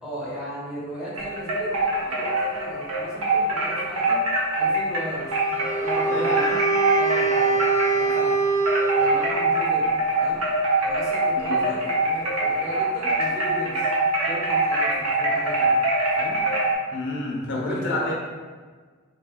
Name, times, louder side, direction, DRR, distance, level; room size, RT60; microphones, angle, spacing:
voice 1, 0.0-4.2 4.5-6.4 6.9-8.4 8.9-10.4 10.8-13.9 14.2-15.7 16.1-16.4 17.5-18.2, right 1 dB, 5° right, -8 dB, 1.1 m, -36 dB
sound 1, 1.2-8.3 8.6-16.7, right 2 dB, 85° right, 0.9 m, -23 dB
Wind instrument woodwind instrument, 5.2-9.5, right 4 dB, 15° left, 0.4 m, -24 dB
voice 2, 6.1-6.6 11.4-11.7 16.9-18.2, left 2 dB, 60° left, -2 dB, 0.6 m, -29 dB
3.7 x 2.5 x 3.5 m, 1.5 s
head